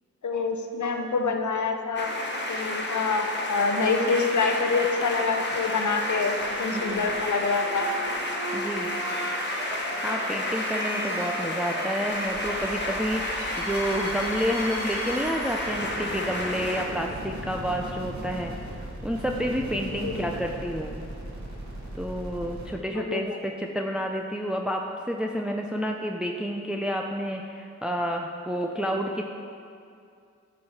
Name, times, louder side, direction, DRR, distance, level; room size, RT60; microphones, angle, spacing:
voice 1, 0.2-2.1 2.5-7.9 11.1-11.2 20.0-20.1 22.9-23.4, left 4 dB, 80° left, 4 dB, 0.8 m, -26 dB
sound 1, 2.0-16.8, left 1 dB, 40° left, 1.5 m, -31 dB
sound 2, 6.4-22.7, right 1 dB, 70° right, 2.2 m, -38 dB
voice 2, 6.7-7.1 8.5-8.9 10.0-18.5 19.0-21.0 21.9-29.2, equal, 5° right, 2 dB, 0.6 m, -30 dB
9.7 x 4.9 x 7.2 m, 2.4 s
cardioid pair, 45°, 29 cm